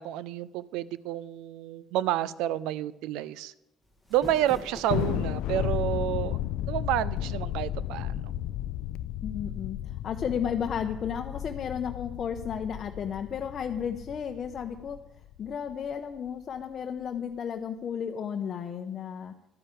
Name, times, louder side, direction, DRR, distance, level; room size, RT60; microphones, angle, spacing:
voice 1, 0.0-3.5 4.1-6.4 6.7-8.3, right 12 dB, 85° right, 19 dB, 0.4 m, -30 dB
sound 1, 3.8-5.4, left 1 dB, 5° left, 1.2 m, -45 dB
Thunder, 4.9-15.5, left 12 dB, 80° left, 0.3 m, -33 dB
voice 2, 9.2-15.0 15.4-19.3, left 7 dB, 50° left, 5 dB, 0.7 m, -33 dB
11.5 x 5.5 x 8.8 m, 0.86 s
cardioid pair, 90°, 0 cm